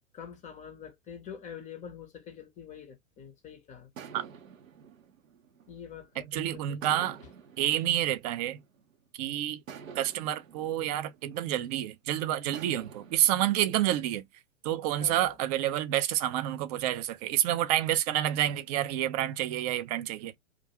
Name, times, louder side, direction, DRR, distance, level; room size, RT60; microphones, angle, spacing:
voice 1, 0.1-3.9 5.7-7.3 15.0-15.4, left 8 dB, 20° left, 0.6 m, -46 dB
sound 1, 4.0-6.2 6.8-9.0 9.7-11.9 12.5-13.6, right 7 dB, 80° right, 0.7 m, -49 dB
voice 2, 6.3-7.2 7.6-8.6 9.2-9.6 10.0-14.2 14.6-20.4, right 12 dB, 30° right, 0.4 m, -28 dB
2.4 x 2.2 x 2.8 m
figure-of-eight pair, 100°, 40 cm